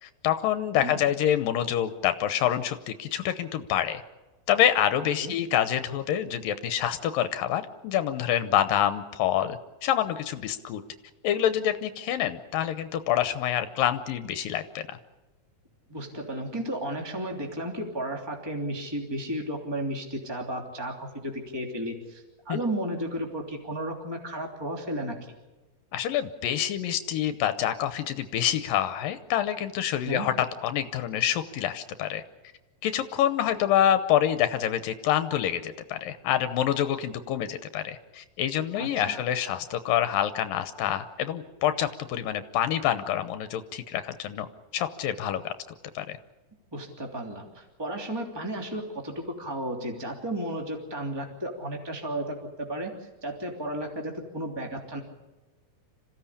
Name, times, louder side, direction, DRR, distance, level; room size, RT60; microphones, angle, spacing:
voice 1, 0.0-4.0 4.5-10.8 11.2-15.0 22.5-22.6 25.9-32.2 32.8-44.5 44.7-45.5 45.9-46.2, left 10 dB, 80° left, 10 dB, 2.6 m, -27 dB
voice 2, 15.9-25.3 30.1-30.3 38.7-39.2 46.7-52.9 53.2-55.0, right 1 dB, 5° right, 1 dB, 2.6 m, -33 dB
27.0 x 16.0 x 8.5 m, 1.2 s
omnidirectional pair, 4.1 m